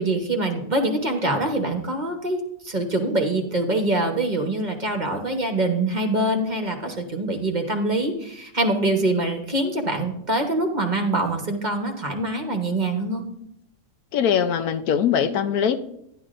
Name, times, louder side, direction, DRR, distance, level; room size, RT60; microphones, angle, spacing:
voice 1, 0.0-13.3, right 2 dB, 35° right, 3 dB, 1.1 m, -24 dB
voice 2, 14.1-15.8, left 8 dB, 90° left, 9 dB, 1.2 m, -21 dB
11.5 x 10.5 x 2.5 m, 0.76 s
omnidirectional pair, 1.5 m